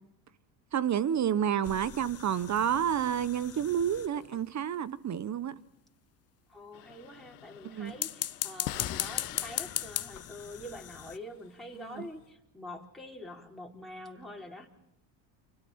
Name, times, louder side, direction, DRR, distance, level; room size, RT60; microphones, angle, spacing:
voice 1, 0.7-5.5 7.6-7.9 11.7-12.1, right 9 dB, 35° right, 1.1 m, -30 dB
sound 1, 1.6-4.5 7.9-11.2, left 10 dB, 30° left, 0.8 m, -38 dB
voice 2, 6.5-14.7, left 1 dB, ahead, 4.3 m, -45 dB
sound 2, 6.7-12.2, left 15 dB, 80° left, 1.5 m, -45 dB
30.0 x 25.5 x 4.4 m
hypercardioid pair, 80°, 48 cm